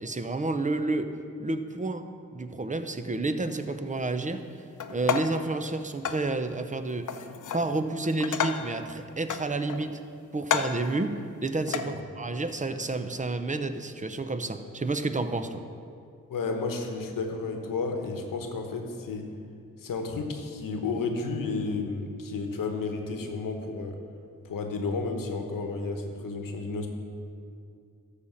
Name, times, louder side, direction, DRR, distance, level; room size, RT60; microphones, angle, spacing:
voice 1, 0.0-1.1 1.4-2.1 2.3-4.4 4.9-7.1 7.5-10.0 10.3-11.1 11.4-15.6, right 2 dB, 25° right, 9 dB, 0.7 m, -30 dB
sound 1, 4.8-5.5 6.1-6.3 7.1-7.7 8.0-8.8 9.3-10.0 10.4-10.9 11.7-11.9, left 7 dB, 65° left, 0.7 m, -30 dB
voice 2, 16.3-19.3 19.8-24.0 24.4-26.9, left 4 dB, 90° left, 4 dB, 1.0 m, -32 dB
12.5 x 4.2 x 7.2 m, 2.4 s
cardioid pair, 60°, 32 cm